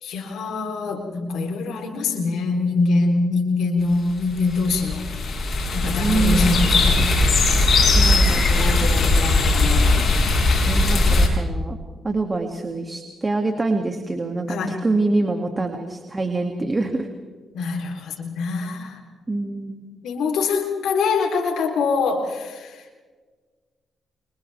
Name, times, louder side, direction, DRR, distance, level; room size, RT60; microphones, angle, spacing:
voice 1, 0.0-5.1 5.7-7.1 8.3-10.1 14.5-14.8 17.5-19.0 20.0-23.0, left 4 dB, 85° left, 2 dB, 3.7 m, -24 dB
sound 1, 4.2-11.3, left 2 dB, 55° left, 7.1 m, -19 dB
voice 2, 5.8-6.8 7.9-9.6 10.6-11.8 12.0-17.1 19.3-19.8, right 2 dB, 25° right, 4 dB, 2.5 m, -26 dB
29.5 x 28.0 x 3.5 m, 1.4 s
cardioid pair, 70°, 0 cm